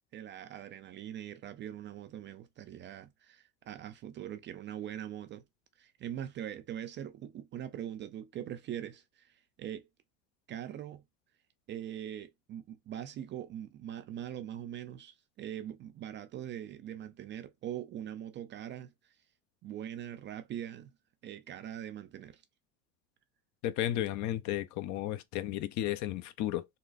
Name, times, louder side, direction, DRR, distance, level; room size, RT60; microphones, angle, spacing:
voice 1, 0.1-5.4 5.8-9.9 10.5-11.0 11.7-19.1 19.6-20.9 21.2-22.4, right 10 dB, 30° right, 0.3 m, -42 dB
voice 2, 23.6-26.7, left 13 dB, 50° left, 0.5 m, -33 dB
4.0 x 2.3 x 2.4 m
hypercardioid pair, 85°, 39 cm